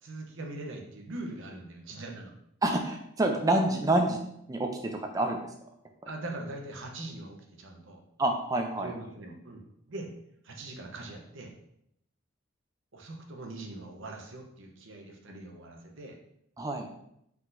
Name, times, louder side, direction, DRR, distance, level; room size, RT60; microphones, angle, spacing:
voice 1, 0.0-2.3 6.1-8.0 8.8-9.6 9.9-10.1 10.4-11.5 12.9-16.2, right 2 dB, 60° right, 2 dB, 0.7 m, -42 dB
voice 2, 2.6-4.2 4.5-5.4 8.2-8.9 16.6-16.9, right 2 dB, 15° right, 3 dB, 0.4 m, -27 dB
4.5 x 3.9 x 2.5 m, 0.74 s
head